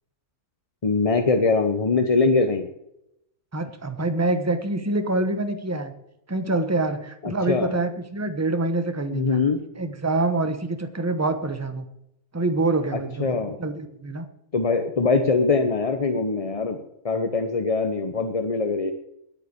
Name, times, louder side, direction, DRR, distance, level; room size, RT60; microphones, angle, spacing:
voice 1, 0.8-2.7 7.2-7.7 9.1-9.6 12.9-13.6 14.5-16.8 17.0-18.9, left 4 dB, 30° left, 6 dB, 0.7 m, -22 dB
voice 2, 3.5-5.9 6.3-9.4 9.8-11.9 12.3-14.2, right 2 dB, 10° right, 9 dB, 0.9 m, -26 dB
10.5 x 8.6 x 8.4 m, 0.81 s
omnidirectional pair, 1.6 m